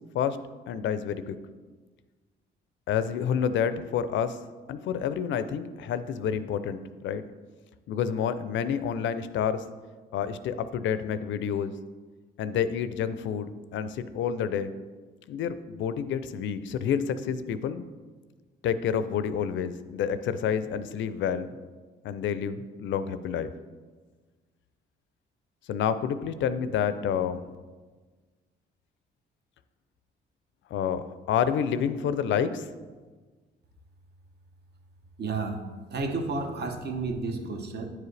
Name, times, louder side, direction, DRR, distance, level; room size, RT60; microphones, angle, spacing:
voice 1, 0.7-1.4 2.9-4.4 4.7-7.2 7.9-9.7 10.1-11.7 12.4-14.7 15.3-17.8 18.6-21.5 22.0-23.5 25.7-27.4 30.7-32.7, left 8 dB, 70° left, 12 dB, 0.5 m, -29 dB
voice 2, 35.2-35.6 35.9-37.9, right 3 dB, 55° right, 5 dB, 0.9 m, -31 dB
9.3 x 4.7 x 3.3 m, 1.4 s
cardioid pair, 90°, 20 cm